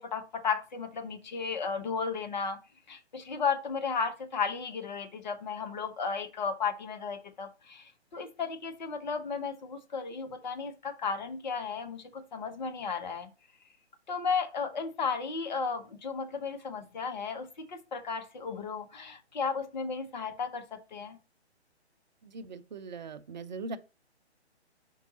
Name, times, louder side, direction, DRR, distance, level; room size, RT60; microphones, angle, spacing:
voice 1, 0.0-2.6 2.9-13.3 14.1-21.2, left 5 dB, 40° left, 1.1 m, -34 dB
voice 2, 22.2-23.8, right 3 dB, 40° right, 0.6 m, -40 dB
5.8 x 4.6 x 4.0 m
figure-of-eight pair, 135°, 34 cm